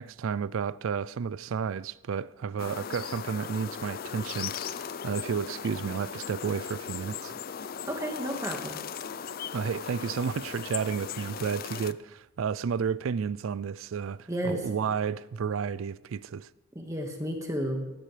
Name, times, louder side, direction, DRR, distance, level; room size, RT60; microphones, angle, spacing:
voice 1, 0.0-7.4 9.5-16.5, right 6 dB, 80° right, 0.4 m, -32 dB
sound 1, 2.6-11.9, left 7 dB, 45° left, 0.4 m, -38 dB
voice 2, 7.9-8.8 14.3-14.9 16.7-17.9, equal, 15° right, 1.6 m, -32 dB
19.5 x 15.0 x 3.3 m
head